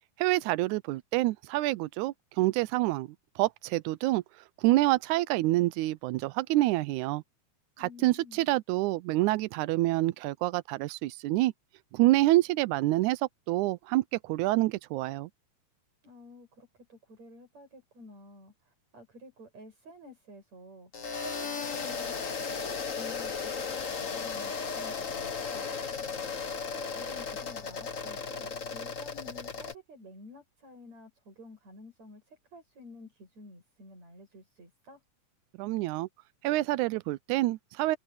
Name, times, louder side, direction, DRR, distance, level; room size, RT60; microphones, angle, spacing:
voice 1, 0.2-3.1 3.4-4.2 4.6-7.2 7.8-11.5 11.9-13.2 13.5-15.3 35.6-36.1 36.4-38.0, right 17 dB, 85° right, 2.0 m, -27 dB
voice 2, 7.8-8.6 16.0-25.8 26.5-35.0, left 1 dB, 60° right, 9.0 m, -51 dB
sound 1, 20.9-29.7, left 5 dB, 45° left, 1.1 m, -35 dB
omnidirectional pair, 3.5 m